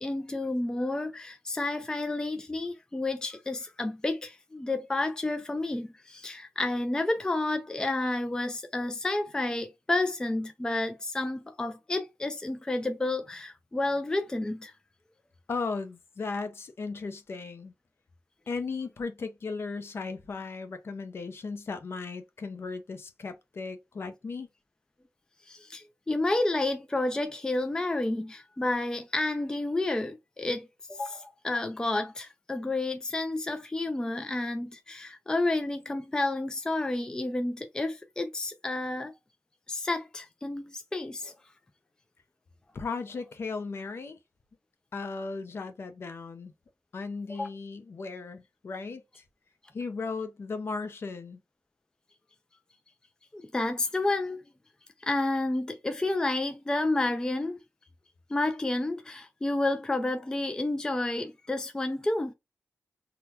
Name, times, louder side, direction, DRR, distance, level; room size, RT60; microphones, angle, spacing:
voice 1, 0.0-14.7 25.5-39.1 39.7-41.3 47.3-47.5 53.3-54.4 55.0-57.6 58.3-62.3, left 2 dB, 15° left, 0.4 m, -30 dB
voice 2, 15.5-17.7 18.5-24.5 42.7-44.2 44.9-46.5 46.9-49.2 49.7-51.4, left 4 dB, 50° left, 0.6 m, -36 dB
3.8 x 2.2 x 2.8 m
wide cardioid pair, 130°, 5 cm